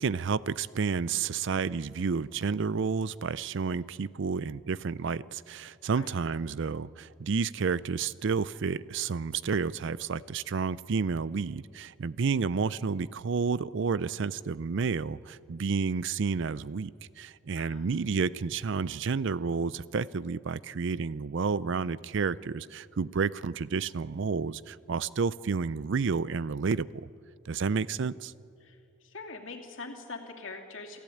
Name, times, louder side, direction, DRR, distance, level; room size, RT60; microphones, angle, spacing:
voice 1, 0.0-16.9 17.2-27.1 27.5-28.3, right 5 dB, 65° right, 19 dB, 0.5 m, -30 dB
voice 2, 28.6-31.0, left 3 dB, 70° left, 2 dB, 2.7 m, -43 dB
28.0 x 14.0 x 8.6 m, 2.5 s
head